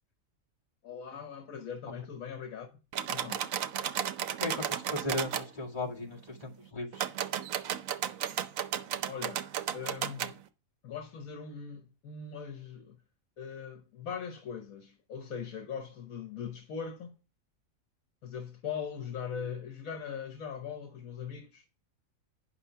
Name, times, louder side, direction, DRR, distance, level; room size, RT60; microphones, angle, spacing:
voice 1, 0.8-2.7 3.1-3.5 9.1-10.3 10.8-13.0 13.4-17.1 18.2-21.6, left 7 dB, 80° left, 1.4 m, -40 dB
sound 1, 2.9-5.5 6.9-10.3, right 9 dB, 75° right, 1.1 m, -34 dB
voice 2, 4.4-7.1, left 2 dB, 25° left, 2.2 m, -36 dB
9.3 x 6.0 x 4.5 m
omnidirectional pair, 1.4 m